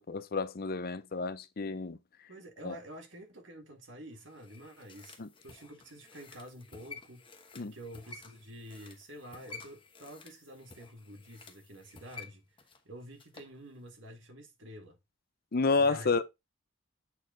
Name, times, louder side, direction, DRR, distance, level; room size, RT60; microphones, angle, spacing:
voice 1, 0.0-2.0 2.6-2.8 5.2-5.3 7.6-7.7 15.5-16.2, left 4 dB, 50° left, 0.6 m, -30 dB
voice 2, 2.3-7.2 7.7-12.4 12.9-15.0 15.7-16.2, equal, 70° right, 2.0 m, -48 dB
sound 1, 4.2-13.6 13.9-14.0, left 4 dB, 25° left, 1.0 m, -52 dB
8.0 x 4.4 x 3.8 m
head